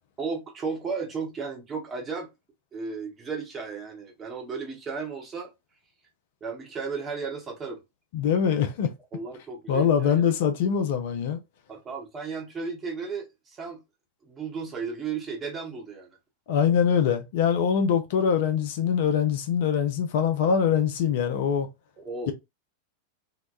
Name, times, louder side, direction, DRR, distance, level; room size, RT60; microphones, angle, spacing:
voice 1, 0.2-2.3 2.7-5.5 6.4-7.8 9.1-10.3 11.7-13.8 14.2-16.2 22.0-22.3, right 5 dB, 25° right, 0.9 m, -34 dB
voice 2, 8.1-8.9 9.7-11.4 16.5-21.7, left 7 dB, 50° left, 0.5 m, -23 dB
2.9 x 2.1 x 2.3 m
figure-of-eight pair, 90°, 0 cm